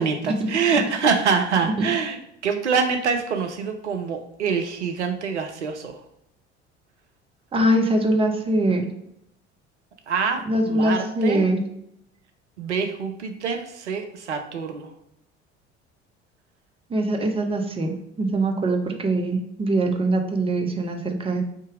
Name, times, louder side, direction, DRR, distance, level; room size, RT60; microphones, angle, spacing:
voice 1, 0.0-2.2 2.4-6.0 10.1-11.5 12.6-14.9, right 5 dB, 80° right, 5 dB, 0.5 m, -25 dB
voice 2, 7.5-8.9 10.5-11.6 16.9-21.4, right 1 dB, 15° right, 3 dB, 0.7 m, -23 dB
3.6 x 2.7 x 4.7 m, 0.75 s
figure-of-eight pair, 60°, 34 cm